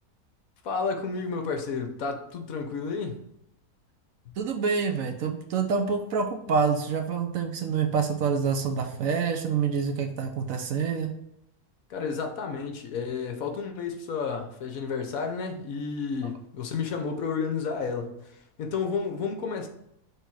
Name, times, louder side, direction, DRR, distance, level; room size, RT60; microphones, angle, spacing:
voice 1, 0.6-3.2 11.9-19.7, left 5 dB, 65° left, 5 dB, 1.2 m, -31 dB
voice 2, 4.4-11.1, right 5 dB, 65° right, 5 dB, 1.0 m, -27 dB
6.3 x 3.4 x 4.6 m, 0.78 s
omnidirectional pair, 1.7 m